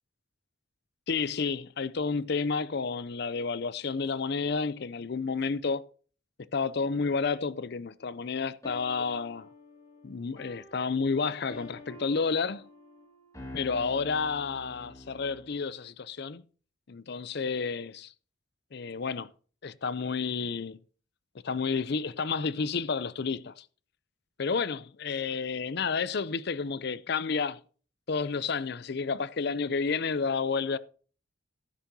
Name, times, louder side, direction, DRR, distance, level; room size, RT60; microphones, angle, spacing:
voice 1, 1.1-5.8 6.5-9.5 10.0-12.7 13.5-16.4 16.9-18.1 18.7-19.3 19.6-20.8 21.4-23.6 24.4-27.6 28.1-30.8, left 5 dB, 50° left, 0.5 m, -30 dB
sound 1, 8.6-15.6, left 1 dB, 15° left, 2.3 m, -48 dB
13.0 x 10.5 x 2.8 m
head